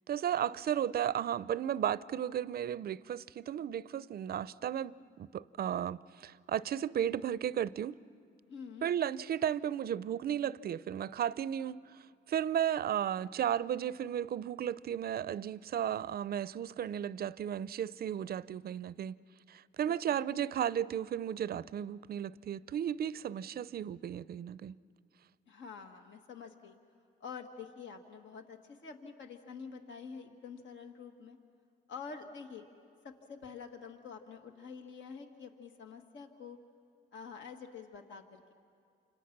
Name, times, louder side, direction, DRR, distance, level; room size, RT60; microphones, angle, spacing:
voice 1, 0.1-8.0 8.8-19.2 19.5-24.8, right 9 dB, 50° right, 0.5 m, -34 dB
voice 2, 8.5-8.9 20.1-20.3 25.5-26.8 27.2-31.4 31.9-32.6 33.0-36.6 37.1-38.2, left 5 dB, 70° left, 1.7 m, -47 dB
29.0 x 26.5 x 6.0 m
cardioid pair, 90°, 20 cm